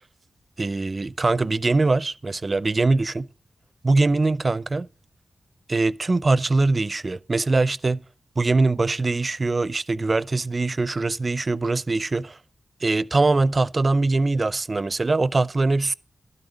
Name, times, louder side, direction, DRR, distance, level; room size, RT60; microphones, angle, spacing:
voice 1, 0.6-3.3 3.8-4.9 5.7-8.0 8.4-12.4 12.8-15.9, right 3 dB, 40° right, 0.4 m, -22 dB
12.0 x 7.9 x 5.0 m
cardioid pair, 55°, 0 cm